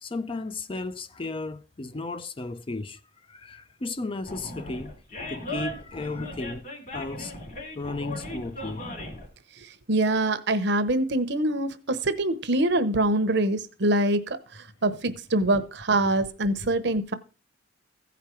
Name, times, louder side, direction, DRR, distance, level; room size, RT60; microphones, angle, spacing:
voice 1, 0.0-3.0 3.3-5.0 5.3-6.7 6.9-7.3 7.8-8.9, left 3 dB, 30° left, 0.5 m, -34 dB
Animal, 4.2-9.3, left 1 dB, 45° left, 3.1 m, -37 dB
voice 2, 9.9-17.1, right 1 dB, 65° right, 0.9 m, -24 dB
15.5 x 5.1 x 4.4 m
head